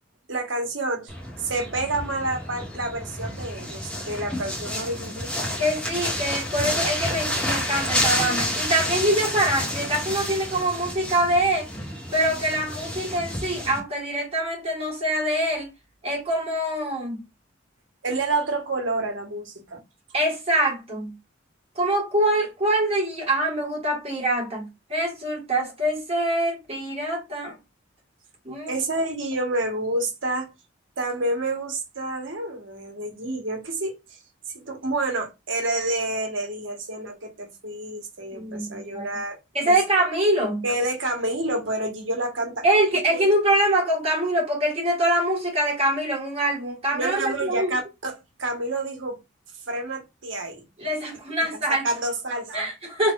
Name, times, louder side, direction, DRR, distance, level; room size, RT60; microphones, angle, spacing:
voice 1, 0.3-1.1 1.4-5.3 18.0-19.8 28.7-30.5 31.0-33.9 34.5-39.4 39.7-39.8 40.6-42.6 43.1-43.2 46.9-49.2 49.7-50.6 51.5-52.7, right 2 dB, 70° right, 1.3 m, -28 dB
sound 1, 1.1-13.8, left 1 dB, 5° left, 1.1 m, -29 dB
voice 2, 5.6-11.7 12.1-15.7 16.0-17.2 20.1-21.1 21.7-27.5 28.4-28.7 38.3-39.1 39.5-40.6 42.6-47.7 50.8-51.9 52.5-53.1, right 1 dB, 30° right, 1.6 m, -24 dB
4.5 x 3.4 x 2.4 m
head